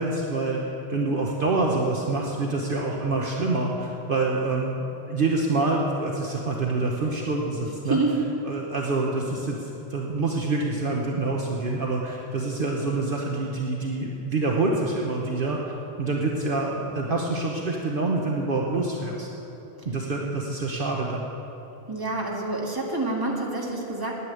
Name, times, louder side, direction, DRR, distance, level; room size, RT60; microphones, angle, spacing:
voice 1, 0.0-8.0 8.4-19.3 19.8-21.2, right 2 dB, 55° right, -1 dB, 1.1 m, -26 dB
voice 2, 7.9-8.2 21.9-24.1, right 2 dB, 20° right, -2 dB, 1.8 m, -27 dB
9.8 x 9.7 x 9.0 m, 3.0 s
omnidirectional pair, 1.1 m